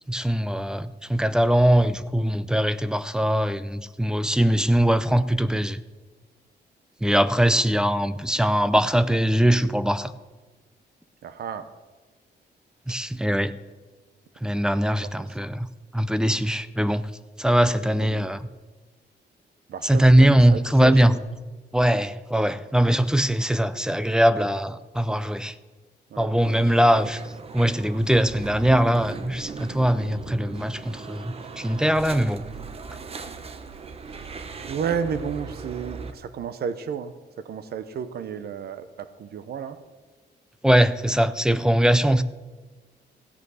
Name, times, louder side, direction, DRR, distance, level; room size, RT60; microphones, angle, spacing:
voice 1, 0.1-5.8 7.0-10.1 12.9-13.5 14.4-15.7 15.9-17.1 17.4-18.5 19.8-21.1 21.7-25.5 26.2-27.2 27.5-32.4 40.6-42.2, right 1 dB, 5° right, 14 dB, 0.5 m, -21 dB
voice 2, 11.2-11.7 12.9-13.0 15.0-15.3 17.8-18.5 19.7-21.2 26.1-26.3 34.1-34.3 34.7-39.8, right 7 dB, 60° right, 12 dB, 0.9 m, -33 dB
sound 1, 26.4-36.1, right 5 dB, 35° right, 0.9 m, -39 dB
16.0 x 8.3 x 6.4 m, 1.3 s
cardioid pair, 150°, 18 cm